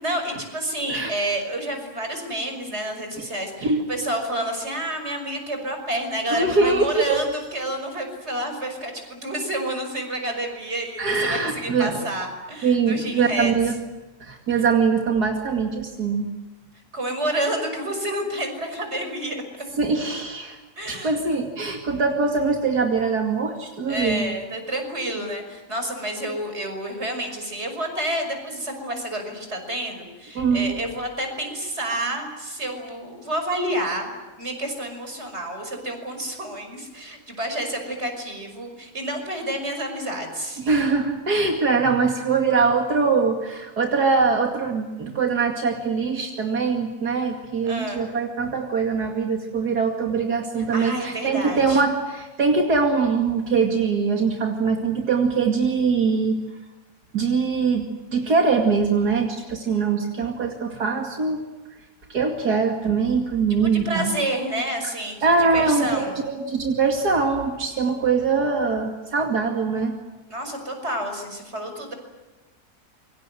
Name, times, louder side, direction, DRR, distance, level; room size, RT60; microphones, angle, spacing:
voice 1, 0.0-13.5 16.9-19.4 20.8-21.2 23.9-40.6 47.6-48.0 50.7-51.8 63.6-66.2 70.3-71.9, right 1 dB, 40° right, 5 dB, 6.0 m, -29 dB
voice 2, 6.3-7.3 11.0-12.0 12.6-13.8 14.2-16.3 19.8-20.6 20.9-24.2 30.4-30.7 40.6-56.4 57.1-61.4 62.1-64.2 65.2-69.9, right 4 dB, 80° right, 2 dB, 2.9 m, -22 dB
27.5 x 24.0 x 7.8 m, 1.2 s
omnidirectional pair, 1.7 m